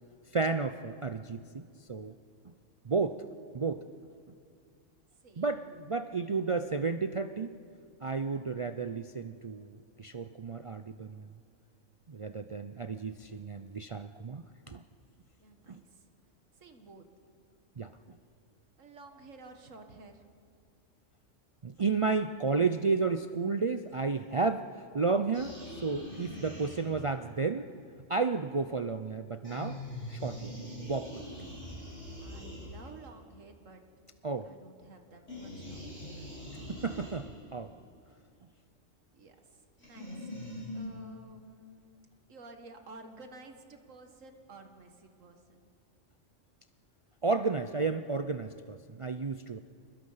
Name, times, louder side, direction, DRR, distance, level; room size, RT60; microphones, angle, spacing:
voice 1, 0.3-2.1 2.4-2.5 2.8-3.2 3.5-3.8 4.3-4.4 5.4-7.6 8.0-11.3 12.1-14.8 15.7-15.8 17.8-18.2 21.6-27.7 28.1-29.8 30.1-30.5 30.8-31.2 34.2-34.5 36.7-37.7 47.2-49.6, right 4 dB, 50° right, 9 dB, 0.3 m, -32 dB
voice 2, 5.2-5.8 15.4-16.1 16.6-17.1 18.8-20.3 32.2-33.8 34.4-36.3 39.1-40.3 40.7-42.0 42.3-45.6, right 3 dB, 85° right, 5 dB, 1.9 m, -53 dB
sound 1, 25.3-27.2 29.4-33.1 35.3-37.5 39.8-40.8, left 1 dB, 70° left, 7.9 m, -43 dB
28.5 x 20.5 x 5.7 m, 2.3 s
omnidirectional pair, 1.3 m